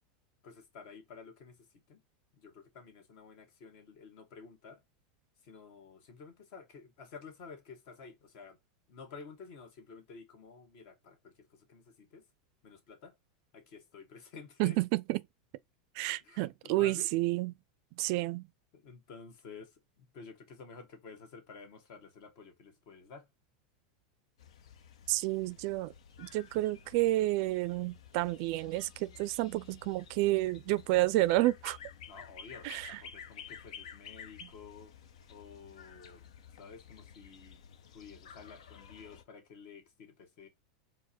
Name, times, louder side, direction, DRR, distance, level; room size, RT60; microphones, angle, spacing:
voice 1, 0.4-2.0 2.3-4.8 5.4-8.6 8.9-12.3 12.6-13.1 13.5-14.8 16.2-17.1 18.7-23.3 32.1-34.9 35.3-37.6 37.9-40.5, left 5 dB, 55° left, 1.6 m, -51 dB
voice 2, 14.6-15.2 16.0-17.5 18.0-18.5 25.1-25.9 26.2-31.8 32.6-33.0, right 18 dB, 50° right, 0.4 m, -30 dB
sound 1, 24.4-39.2, left 7 dB, 85° left, 0.7 m, -52 dB
4.7 x 2.1 x 4.3 m
supercardioid pair, 145°, 3 cm